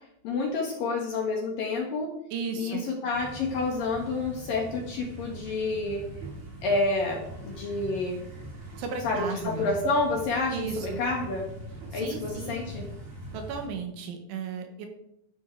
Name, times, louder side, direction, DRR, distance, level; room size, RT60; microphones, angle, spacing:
voice 1, 0.2-2.1 2.6-6.0 6.6-8.2 9.0-11.5 11.9-12.9, left 3 dB, 60° left, 0 dB, 2.6 m, -29 dB
voice 2, 2.3-2.8 8.8-9.7 10.5-11.0 11.9-12.6 13.3-14.9, right 5 dB, 75° right, 5 dB, 3.6 m, -35 dB
sound 1, 3.1-13.7, right 1 dB, 45° right, 4.9 m, -42 dB
12.5 x 11.0 x 4.8 m, 0.77 s
omnidirectional pair, 5.9 m